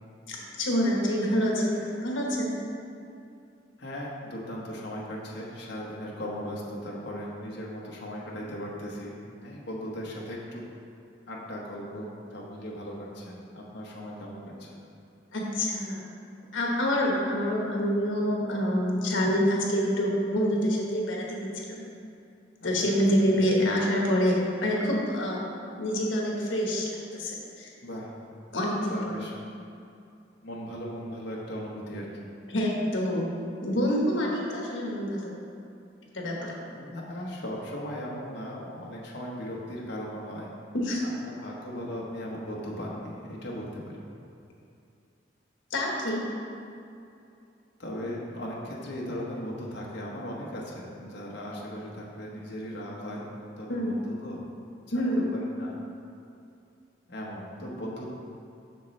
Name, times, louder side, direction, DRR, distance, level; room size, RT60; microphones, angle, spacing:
voice 1, 0.3-2.5 15.3-16.0 16.5-21.8 22.6-27.7 28.5-29.1 32.5-33.4 33.6-35.3 36.1-36.5 40.7-41.0 45.7-46.2 53.7-53.9 54.9-55.3, equal, 90° left, -2 dB, 1.2 m, -27 dB
voice 2, 3.8-10.6 11.3-14.8 22.6-23.0 27.8-28.1 28.8-29.3 30.4-32.3 36.7-40.5 41.0-44.1 47.8-53.3 53.6-54.4 54.7-54.8 55.1-55.7 57.1-58.1, equal, 65° left, -4 dB, 1.1 m, -38 dB
6.8 x 6.4 x 3.2 m, 2.6 s
head